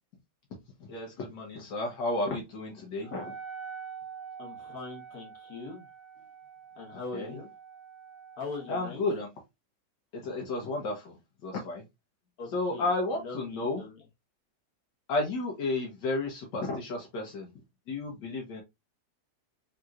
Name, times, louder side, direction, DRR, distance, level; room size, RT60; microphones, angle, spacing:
voice 1, 0.8-3.3 7.1-7.4 8.7-9.3 10.1-11.8 12.5-13.8 15.1-17.5 17.9-18.6, left 2 dB, 80° left, 1.5 m, -32 dB
Wind instrument woodwind instrument, 3.0-8.8, right 6 dB, 45° right, 0.8 m, -45 dB
voice 2, 4.4-5.9 6.8-7.5 8.4-9.0 12.4-12.8 13.2-14.0, left 4 dB, 60° left, 1.5 m, -41 dB
3.7 x 2.8 x 2.3 m
omnidirectional pair, 1.9 m